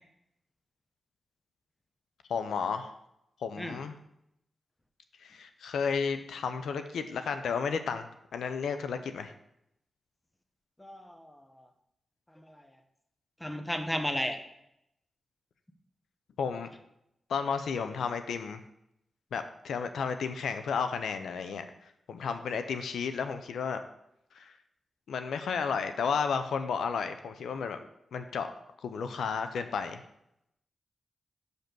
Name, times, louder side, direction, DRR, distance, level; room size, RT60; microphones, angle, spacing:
voice 1, 2.3-2.9 3.4-4.0 5.2-8.1 8.3-9.3 16.4-16.7 17.3-18.6 19.3-21.6 22.1-23.8 24.3-24.5 25.1-27.8 28.1-28.5 28.8-30.0, left 6 dB, 90° left, 9 dB, 0.5 m, -32 dB
voice 2, 10.8-11.6 12.4-12.6 13.4-14.4, left 1 dB, 15° left, 6 dB, 1.0 m, -34 dB
6.5 x 5.2 x 6.0 m, 0.81 s
cardioid pair, 60°, 0 cm